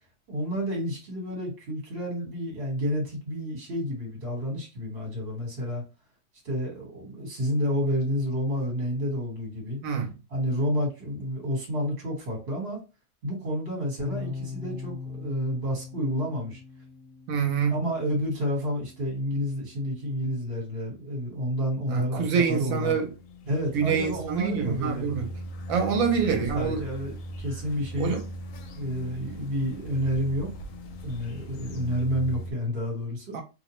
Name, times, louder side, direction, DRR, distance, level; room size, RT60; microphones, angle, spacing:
voice 1, 0.3-5.8 6.4-9.8 10.3-12.8 13.2-16.6 17.7-23.0 23.4-25.3 25.7-28.1 28.7-30.5 31.0-33.4, equal, 50° right, 1.4 m, -30 dB
voice 2, 9.8-10.1 17.3-17.8 21.9-23.1 23.7-25.3 25.7-26.8 28.0-28.2 33.3-33.4, right 6 dB, 75° right, 1.0 m, -26 dB
sound 1, 14.0-20.2, left 4 dB, 15° right, 1.1 m, -41 dB
sound 2, 22.8-32.5, equal, 75° left, 0.9 m, -40 dB
2.6 x 2.1 x 2.9 m
omnidirectional pair, 1.5 m